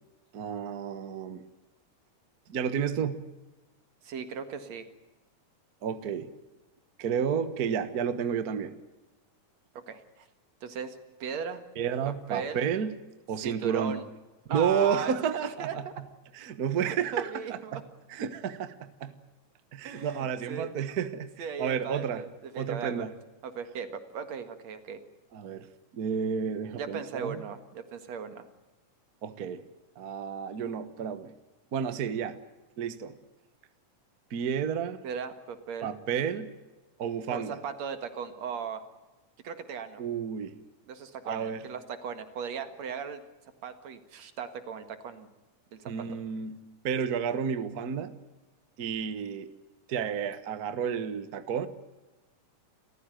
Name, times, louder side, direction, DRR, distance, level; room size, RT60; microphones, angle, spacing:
voice 1, 0.3-1.4 2.5-3.2 5.8-6.3 7.0-8.7 11.8-13.0 13.3-14.0 14.5-15.8 16.3-17.8 18.1-19.1 19.7-22.2 22.5-23.1 25.3-25.7 25.9-27.4 29.2-29.6 30.0-31.3 31.7-32.4 32.8-33.2 34.3-35.0 35.8-36.5 37.0-37.6 40.0-40.6 41.2-41.7 45.8-46.6 46.8-48.1 48.8-49.5 49.9-51.7, right 7 dB, 75° right, 11 dB, 0.8 m, -31 dB
voice 2, 4.0-4.9 9.9-10.3 10.6-11.6 12.0-12.6 13.4-14.1 14.5-16.0 16.8-17.8 19.8-20.7 21.4-23.1 23.4-25.0 26.7-28.4 35.0-35.9 37.3-38.8 39.4-40.0 40.9-43.2 43.6-45.3 45.7-45.9, right 6 dB, 55° right, 9 dB, 2.9 m, -37 dB
29.0 x 15.0 x 9.2 m, 1.1 s
omnidirectional pair, 3.8 m